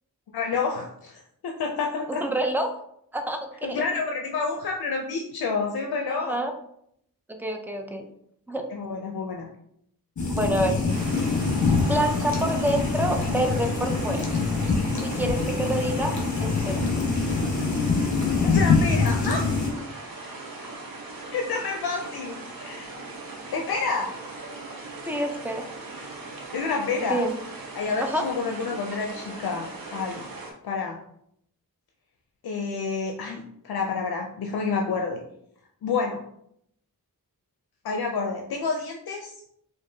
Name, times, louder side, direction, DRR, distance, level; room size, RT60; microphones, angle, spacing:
voice 1, 0.3-2.2 3.6-6.4 8.7-9.5 18.4-19.5 21.3-22.9 23.5-24.2 26.5-27.2 27.7-30.3 30.6-31.0 32.4-35.2 35.8-36.2 37.8-39.3, left 4 dB, 85° left, 1 dB, 0.5 m, -29 dB
voice 2, 2.2-2.7 3.1-3.8 6.1-6.5 7.3-8.1 8.5-8.6 10.4-10.8 11.8-14.3 15.0-16.1 16.4-16.8 25.1-25.7 27.0-27.3 28.0-28.3, right 1 dB, 5° right, 4 dB, 0.5 m, -27 dB
sound 1, 10.2-19.7, left 4 dB, 55° left, 1.0 m, -24 dB
sound 2, 10.9-30.5, right 3 dB, 70° right, 0.8 m, -39 dB
4.5 x 2.5 x 2.7 m, 0.72 s
wide cardioid pair, 85°, 36 cm